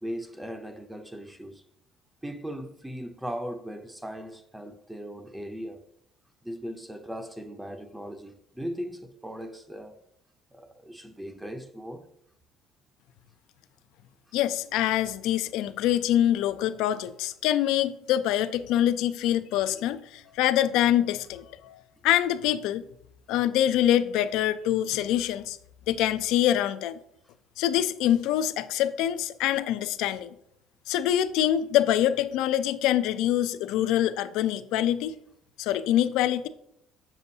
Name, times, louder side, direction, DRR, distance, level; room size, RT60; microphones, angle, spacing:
voice 1, 0.0-1.6 2.2-5.8 6.4-10.0 10.5-12.1, equal, 5° right, 0.5 m, -38 dB
voice 2, 14.3-22.9 23.3-25.6 25.9-27.0 27.6-30.3 30.9-35.2 35.6-36.5, left 12 dB, 80° left, 0.4 m, -25 dB
6.9 x 6.7 x 2.7 m
cardioid pair, 135°, 0 cm